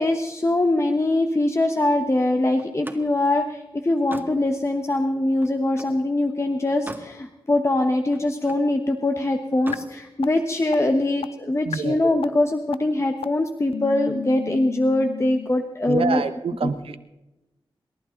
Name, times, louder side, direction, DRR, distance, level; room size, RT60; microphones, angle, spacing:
voice 1, 0.0-16.2 16.6-16.7, left 2 dB, 30° left, 5 dB, 1.3 m, -22 dB
Slam, 2.6-6.0 6.5-7.2 7.5-8.7 9.5-9.9, right 1 dB, 20° right, 1.8 m, -41 dB
sound 1, 9.7-9.8 10.2-10.3 10.7-10.8 11.2-11.3 11.7-11.8 12.2-12.3 12.7-12.8 13.2-13.3 13.7-15.5, left 8 dB, 85° left, 0.5 m, -32 dB
voice 2, 11.6-12.0 15.9-17.0, right 5 dB, 80° right, 11 dB, 1.1 m, -26 dB
28.0 x 11.5 x 4.0 m, 1.0 s
cardioid pair, 50°, 10 cm